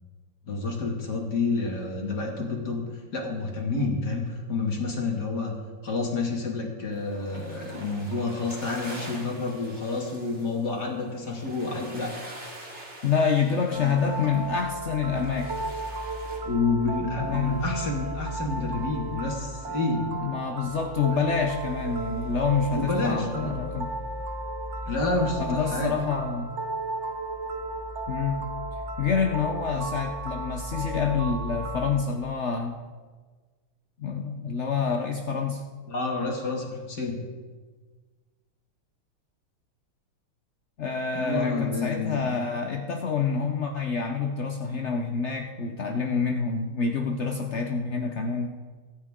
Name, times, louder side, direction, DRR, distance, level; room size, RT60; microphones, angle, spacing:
voice 1, 0.5-2.8 3.1-5.5 5.8-12.2 13.8-13.9 14.2-14.3 16.4-20.1 21.1-21.3 22.7-23.5 24.8-25.9 29.8-29.9 35.9-37.2 41.1-42.3, left 3 dB, 50° left, 0 dB, 2.6 m, -29 dB
sound 1, 6.9-16.4, right 1 dB, 30° right, 2.9 m, -45 dB
voice 2, 13.0-15.6 17.2-17.7 20.2-23.9 25.4-26.5 28.1-28.4 29.0-32.8 34.0-35.6 40.8-48.6, left 5 dB, 70° left, 3 dB, 0.6 m, -27 dB
sound 2, 13.7-32.0, right 2 dB, 60° right, 0.7 m, -34 dB
23.5 x 9.4 x 3.7 m, 1.4 s
omnidirectional pair, 2.4 m